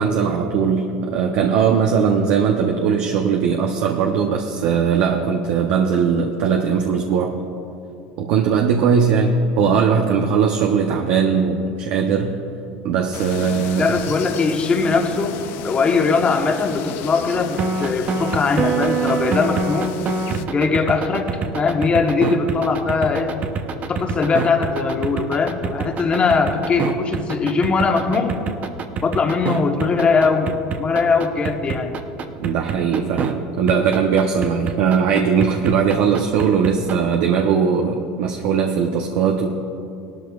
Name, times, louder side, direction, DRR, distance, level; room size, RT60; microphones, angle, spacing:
voice 1, 0.0-7.4 8.2-12.3 12.8-14.0 32.4-39.5, right 6 dB, 70° right, 2 dB, 0.8 m, -19 dB
sound 1, 13.1-20.5, left 10 dB, 60° left, 0.5 m, -34 dB
voice 2, 13.8-15.4 15.6-19.9 20.5-21.3 21.5-23.3 23.9-28.4 29.0-32.0, left 4 dB, 30° left, 4 dB, 1.2 m, -20 dB
sound 2, 17.6-33.3 33.7-37.2, right 5 dB, 40° right, 0.7 m, -25 dB
18.0 x 12.5 x 2.4 m, 2.7 s
supercardioid pair, 100°, 4 cm